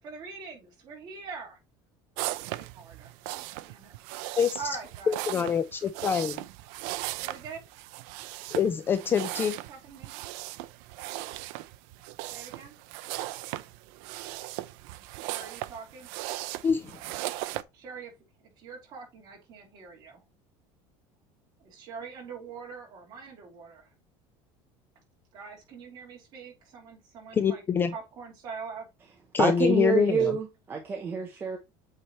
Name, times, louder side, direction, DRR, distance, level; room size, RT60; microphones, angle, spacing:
voice 1, 0.0-1.6 2.2-3.9 4.5-5.2 7.1-7.7 9.5-10.1 12.2-12.7 15.2-16.1 17.7-18.1 18.4-20.2 21.6-23.9 25.3-27.6 27.9-28.9 30.2-30.3, right 5 dB, 35° right, 2.9 m, -43 dB
sound 1, 2.2-17.6, right 17 dB, 70° right, 0.4 m, -38 dB
voice 2, 5.1-6.4 8.5-9.5 16.6-16.9 27.3-27.9 29.3-30.4, left 7 dB, 20° left, 0.3 m, -25 dB
voice 3, 29.4-31.6, right 6 dB, 20° right, 0.8 m, -27 dB
8.0 x 3.3 x 4.3 m
cardioid pair, 175°, 11 cm